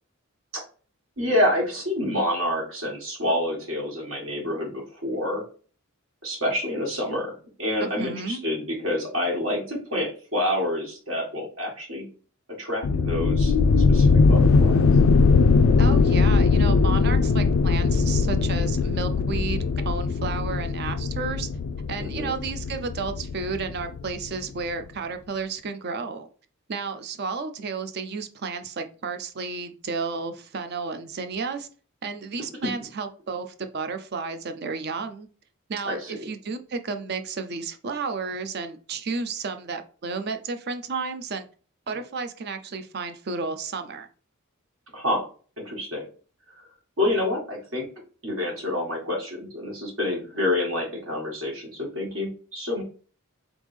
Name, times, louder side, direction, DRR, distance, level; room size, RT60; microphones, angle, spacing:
voice 1, 1.2-5.4 6.2-7.3 7.6-12.1 12.6-13.5 13.9-14.8 22.0-22.3 35.8-36.2 44.9-45.2 45.6-46.1 46.6-46.7 47.0-47.9 48.2-52.8, left 1 dB, 70° right, 1.7 m, -28 dB
voice 2, 7.8-8.4 15.8-21.5 21.9-26.3 26.7-31.7 32.0-35.3 35.7-41.5 41.9-44.1, right 4 dB, 50° right, 0.5 m, -32 dB
sound 1, 12.8-24.3, left 4 dB, 75° left, 0.4 m, -20 dB
3.9 x 3.5 x 3.3 m
head